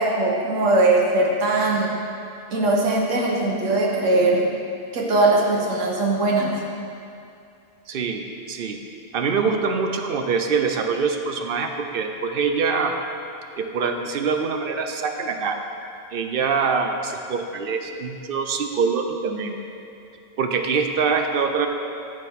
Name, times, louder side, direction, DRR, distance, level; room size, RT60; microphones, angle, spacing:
voice 1, 0.0-1.9 2.5-4.5 4.9-6.5, right 2 dB, 75° right, -2 dB, 1.3 m, -20 dB
voice 2, 7.9-8.8 9.1-12.9 13.6-15.6 16.1-19.6 20.4-21.7, right 5 dB, 60° right, 5 dB, 0.7 m, -24 dB
13.0 x 4.6 x 3.6 m, 2.6 s
omnidirectional pair, 1.3 m